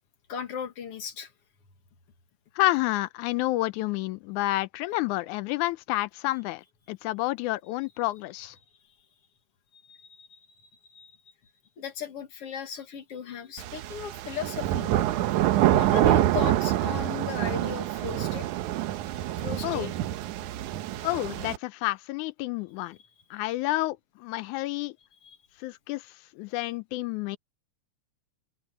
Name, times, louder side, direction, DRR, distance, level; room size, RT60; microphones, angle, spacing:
voice 1, 0.3-1.3 9.7-11.2 11.8-15.0 15.7-18.5 19.4-19.9 25.2-25.4, left 7 dB, 55° left, 2.8 m, -37 dB
voice 2, 2.6-8.6 19.6-19.9 21.0-23.0 23.3-25.0 25.6-27.4, left 18 dB, 90° left, 2.1 m, -29 dB
sound 1, 13.6-21.6, right 13 dB, 90° right, 2.3 m, -26 dB
open air
omnidirectional pair, 3.4 m